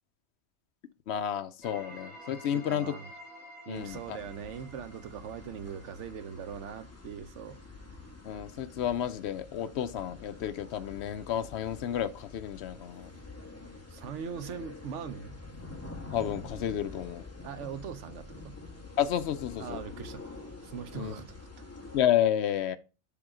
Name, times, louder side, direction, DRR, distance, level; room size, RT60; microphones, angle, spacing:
voice 1, 1.1-2.9 3.7-4.2 8.2-13.1 16.1-17.2 19.0-19.8 20.9-21.1 21.9-22.8, left 10 dB, 70° left, 0.9 m, -31 dB
sound 1, 1.6-6.4, equal, 35° right, 2.0 m, -50 dB
voice 2, 2.5-3.1 3.7-7.6 13.9-15.4 17.4-18.5 19.6-20.3 20.6-21.5, right 7 dB, 85° right, 1.1 m, -41 dB
sound 2, 3.7-22.0, left 3 dB, 15° left, 1.0 m, -47 dB
7.0 x 3.6 x 4.8 m
omnidirectional pair, 1.2 m